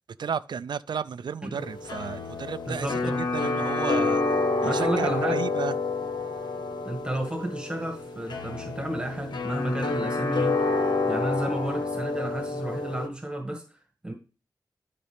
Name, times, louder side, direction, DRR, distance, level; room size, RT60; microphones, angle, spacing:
voice 1, 0.2-3.0 3.3-4.2 4.6-5.7, right 7 dB, 80° right, 0.5 m, -33 dB
sound 1, 1.5-13.1, left 3 dB, 80° left, 1.3 m, -28 dB
voice 2, 2.7-3.2 4.6-5.4 6.8-10.6 11.1-14.1, right 1 dB, 10° right, 2.0 m, -32 dB
12.5 x 5.2 x 3.5 m
wide cardioid pair, 140°, 8 cm